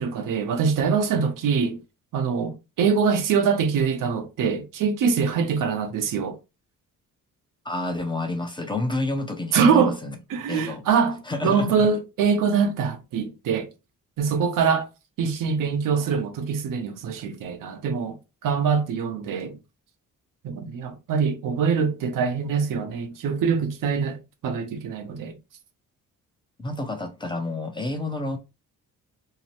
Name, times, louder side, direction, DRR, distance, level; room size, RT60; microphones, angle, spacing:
voice 1, 0.0-1.8 2.1-6.4 9.5-10.0 10.3-13.7 14.2-14.9 15.2-18.2 18.4-19.6 20.4-25.4, right 6 dB, 75° right, 0.6 m, -24 dB
voice 2, 7.6-10.1 10.5-10.9 11.3-11.9 26.6-28.4, left 2 dB, 15° left, 0.5 m, -29 dB
2.7 x 2.0 x 3.0 m
cardioid pair, 100°, 33 cm